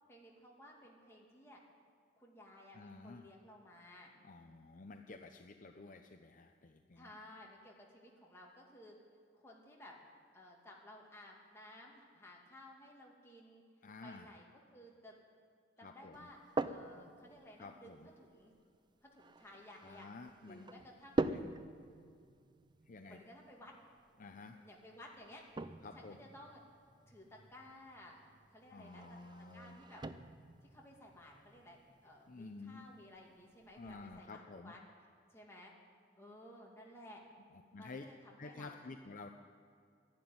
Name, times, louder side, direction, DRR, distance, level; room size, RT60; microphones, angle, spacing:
voice 1, 0.1-1.6 2.2-4.1 6.9-8.9 9.3-9.9 10.3-13.6 14.0-15.1 15.8-16.4 16.6-18.5 19.0-20.1 20.5-21.2 23.0-23.7 24.6-25.4 25.9-26.6 27.1-29.2 29.5-30.0 30.7-34.8 35.3-35.7 36.2-37.2 37.8-38.8, left 1 dB, 15° left, -2 dB, 2.4 m, -56 dB
voice 2, 2.7-3.3 4.2-7.1 13.8-14.3 15.8-16.3 17.6-18.1 19.8-20.7 21.3-21.5 22.9-23.2 24.2-24.6 25.8-26.2 28.7-29.8 32.3-32.9 33.8-34.7 37.5-38.1 38.4-39.3, left 3 dB, 45° left, 5 dB, 0.6 m, -51 dB
sound 1, 16.1-34.2, right 2 dB, 25° right, 0.4 m, -45 dB
12.0 x 11.5 x 9.5 m, 2.3 s
head